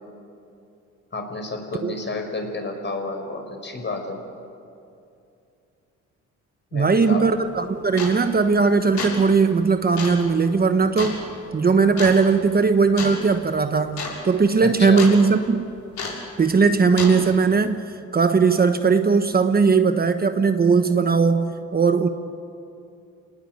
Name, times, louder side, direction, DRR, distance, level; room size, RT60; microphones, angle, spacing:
voice 1, 1.1-4.2 6.7-7.3 14.6-15.1, left 3 dB, 35° left, 4 dB, 5.3 m, -30 dB
voice 2, 6.7-11.2 11.5-15.7 16.4-17.8 18.1-22.1, right 4 dB, 30° right, 8 dB, 1.2 m, -19 dB
sound 1, 7.1-7.2 8.0-8.3 8.8-9.3 10.0-10.2 11.0-11.2 12.0-12.2 13.0-13.2 13.5-13.6 13.9-14.2 14.4-15.2 16.0-16.3 17.0-17.2, left 4 dB, 65° left, 7.1 m, -30 dB
28.0 x 19.0 x 9.4 m, 2.6 s
cardioid pair, 90°, 30 cm